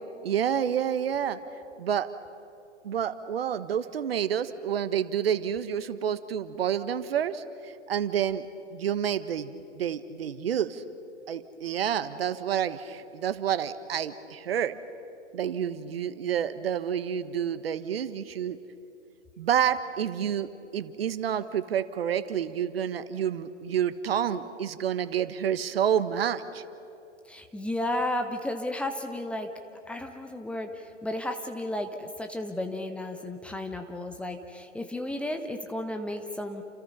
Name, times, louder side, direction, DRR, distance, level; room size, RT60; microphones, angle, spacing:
voice 1, 0.2-1.4 1.8-2.1 2.8-8.5 8.7-10.8 11.3-14.8 15.3-18.6 19.4-26.6, right 9 dB, 50° right, 13 dB, 1.4 m, -29 dB
voice 2, 27.3-29.5 29.9-36.6, left 1 dB, 5° left, 5 dB, 1.0 m, -33 dB
29.5 x 27.5 x 5.6 m, 2.7 s
figure-of-eight pair, 120°, 37 cm